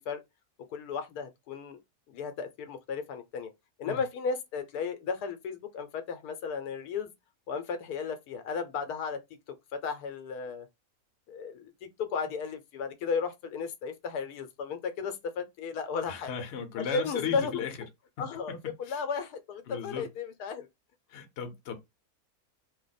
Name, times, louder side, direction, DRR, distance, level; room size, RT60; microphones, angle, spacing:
voice 1, 0.7-1.8 2.1-3.5 3.8-7.1 7.5-9.2 9.7-10.7 11.3-16.4 16.8-17.6 18.2-20.7, left 5 dB, 80° left, 1.1 m, -34 dB
voice 2, 16.1-17.8 18.2-18.6 18.8-19.0 19.7-20.1 21.1-21.8, left 7 dB, 55° left, 0.9 m, -36 dB
2.8 x 2.0 x 3.9 m
omnidirectional pair, 1.7 m